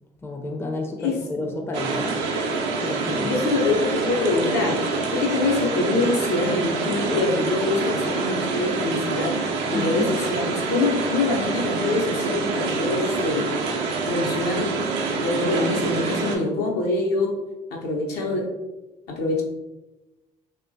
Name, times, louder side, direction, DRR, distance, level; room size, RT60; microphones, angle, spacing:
voice 1, 0.2-2.2 2.8-3.3 9.7-10.1, left 2 dB, 15° left, 2 dB, 0.4 m, -30 dB
voice 2, 1.0-1.5 3.3-13.4 14.1-14.7 15.1-17.3 17.7-18.5 19.1-19.4, left 3 dB, 65° left, -1 dB, 0.6 m, -25 dB
sound 1, 1.7-16.4, right 4 dB, 80° right, 0.4 m, -26 dB
2.9 x 2.2 x 2.6 m, 1.1 s
hypercardioid pair, 55°, 18 cm